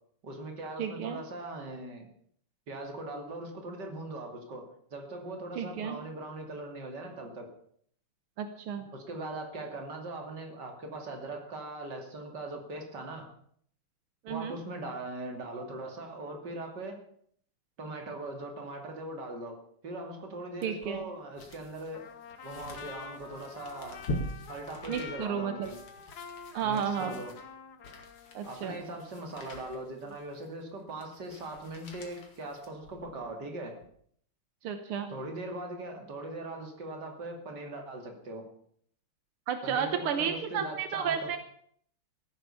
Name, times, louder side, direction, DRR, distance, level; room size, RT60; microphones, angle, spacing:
voice 1, 0.2-2.1 2.7-4.6 4.9-7.5 8.9-13.3 14.3-17.0 17.8-19.6 19.8-22.0 22.4-24.0 24.5-25.7 26.6-27.3 28.4-33.8 35.1-38.5 39.6-41.3, right 2 dB, 50° right, 3 dB, 3.2 m, -40 dB
voice 2, 0.8-1.2 5.6-6.0 8.4-8.9 14.3-14.6 20.6-21.1 24.9-25.7 26.5-27.2 28.3-28.8 34.6-35.1 39.5-41.4, right 7 dB, 85° right, 8 dB, 2.0 m, -32 dB
sound 1, 20.6-33.3 33.7-33.9, left 1 dB, 80° left, 3.3 m, -44 dB
Trumpet, 21.9-28.6, left 6 dB, 55° left, 1.6 m, -47 dB
15.0 x 10.5 x 7.0 m, 0.64 s
omnidirectional pair, 2.4 m